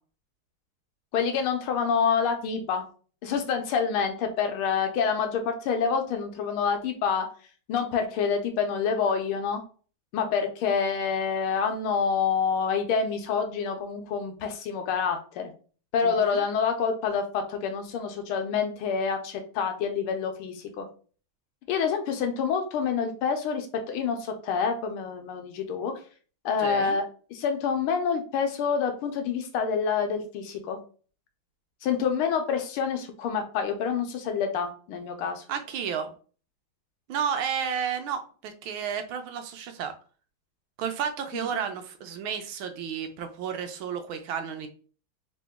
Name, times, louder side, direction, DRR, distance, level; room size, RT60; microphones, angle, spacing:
voice 1, 1.1-2.9 3.2-7.3 7.7-9.6 10.1-15.5 15.9-20.9 21.7-25.9 26.4-27.0 27.3-30.8 31.8-35.4 41.3-41.5, left 6 dB, 80° left, 6 dB, 1.6 m, -27 dB
voice 2, 16.0-16.4 26.6-27.0 35.5-36.1 37.1-39.9 40.8-44.7, right 7 dB, 75° right, 6 dB, 1.4 m, -32 dB
3.7 x 3.0 x 3.5 m, 0.40 s
omnidirectional pair, 2.3 m